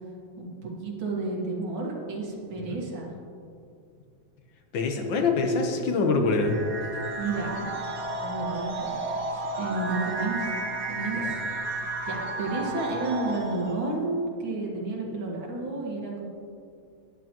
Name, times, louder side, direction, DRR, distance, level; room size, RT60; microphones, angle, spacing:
voice 1, 0.4-3.1 7.2-7.7 8.2-8.9 9.3-10.5 10.9-11.4 12.0-16.2, right 3 dB, 85° right, -2 dB, 2.5 m, -31 dB
voice 2, 4.7-6.6 11.1-11.4, left 3 dB, 75° left, 3 dB, 1.7 m, -25 dB
sound 1, 6.4-14.0, right 2 dB, 60° right, 1.6 m, -32 dB
13.5 x 9.7 x 3.0 m, 2.4 s
omnidirectional pair, 2.1 m